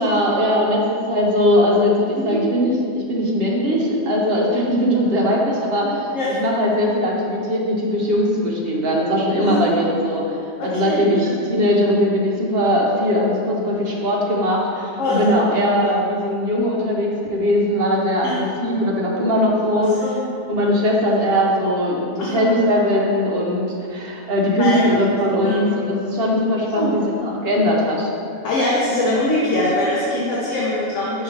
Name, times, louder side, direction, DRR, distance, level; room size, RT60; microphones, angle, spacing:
voice 1, 0.0-6.1 6.4-10.4 10.7-20.0 20.5-28.1, equal, 45° right, -2 dB, 1.0 m, -20 dB
voice 2, 10.6-11.4 15.0-15.2 15.7-15.8 18.2-18.4 20.0-20.3 22.2-22.5 24.6-25.1 25.4-25.8 26.7-27.0 28.4-31.2, left 1 dB, 60° left, -6 dB, 1.1 m, -23 dB
5.5 x 5.5 x 3.3 m, 2.5 s
omnidirectional pair, 1.6 m